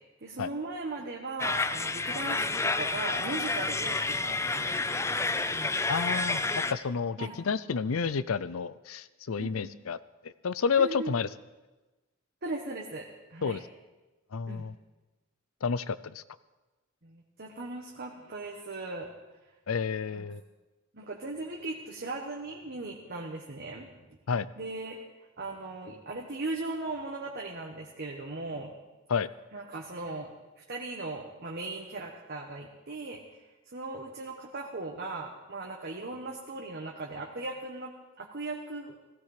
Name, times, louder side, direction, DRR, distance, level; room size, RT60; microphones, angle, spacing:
voice 1, 0.2-5.2 5.5-5.7 7.2-7.3 9.4-9.8 10.8-11.1 12.4-13.6 14.5-14.6 17.0-19.1 20.1-20.3 20.9-24.2 24.6-25.0 25.4-28.7 29.5-30.3 30.7-33.2 33.7-38.9, right 2 dB, 50° right, 0 dB, 1.3 m, -38 dB
sound 1, 1.4-6.7, left 3 dB, 15° left, 0.5 m, -29 dB
voice 2, 5.9-10.0 10.2-11.3 13.4-13.6 14.3-14.7 15.6-16.2 19.7-20.4 24.3-24.5 29.1-29.3, left 5 dB, 90° left, 16 dB, 0.6 m, -30 dB
17.0 x 15.5 x 5.0 m, 1.1 s
head